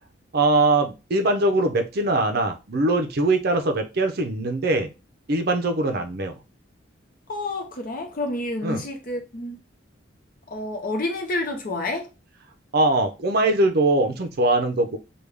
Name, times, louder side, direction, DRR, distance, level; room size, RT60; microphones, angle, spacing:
voice 1, 0.3-4.9 5.3-6.4 8.6-8.8 12.7-15.0, right 2 dB, 50° right, 0.5 m, -22 dB
voice 2, 7.3-9.6 10.5-12.1, left 2 dB, 45° left, 0.7 m, -29 dB
3.3 x 2.3 x 3.4 m
head